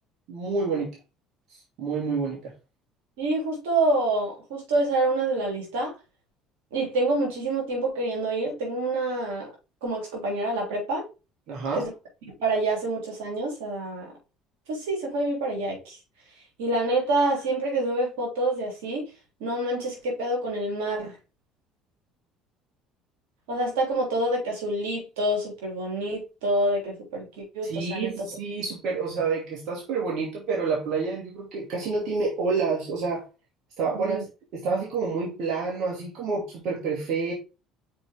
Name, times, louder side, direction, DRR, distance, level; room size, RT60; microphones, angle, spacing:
voice 1, 0.3-1.0 1.8-2.5 11.5-11.9 27.6-33.3 33.8-34.2 34.5-37.3, right 4 dB, 65° right, 2.3 m, -28 dB
voice 2, 3.2-5.9 6.7-9.5 9.8-11.1 11.7-11.9 12.4-14.1 14.7-16.0 16.6-19.1 19.4-21.1 23.5-28.3 33.9-34.2, right 2 dB, 85° right, 3.1 m, -27 dB
6.0 x 4.7 x 3.7 m
supercardioid pair, 80°, 0 cm